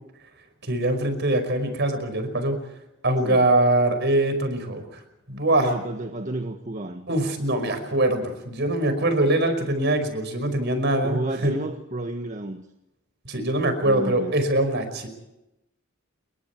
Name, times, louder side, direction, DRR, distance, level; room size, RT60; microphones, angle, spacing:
voice 1, 0.6-2.6 3.0-5.0 5.3-5.7 7.1-11.5 13.3-15.1, right 1 dB, 55° right, 8 dB, 5.3 m, -23 dB
voice 2, 5.6-7.1 11.0-12.6 13.8-14.4, right 2 dB, 40° right, 4 dB, 1.5 m, -31 dB
28.5 x 23.0 x 4.6 m, 0.90 s
head